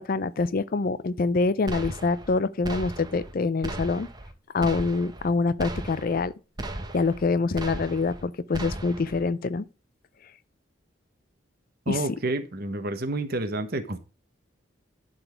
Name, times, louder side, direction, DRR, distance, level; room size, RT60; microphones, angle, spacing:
voice 1, 0.0-4.1 4.5-6.3 6.9-9.7 11.9-12.0, left 3 dB, 50° left, 0.5 m, -25 dB
sound 1, 1.7-2.3 2.6-3.3 3.6-4.3 4.6-5.3 5.6-6.3 6.6-7.3 7.6-8.2 8.5-9.2, right 1 dB, 20° right, 1.0 m, -36 dB
voice 2, 11.9-14.0, right 2 dB, 55° right, 1.1 m, -29 dB
11.5 x 4.1 x 4.4 m
head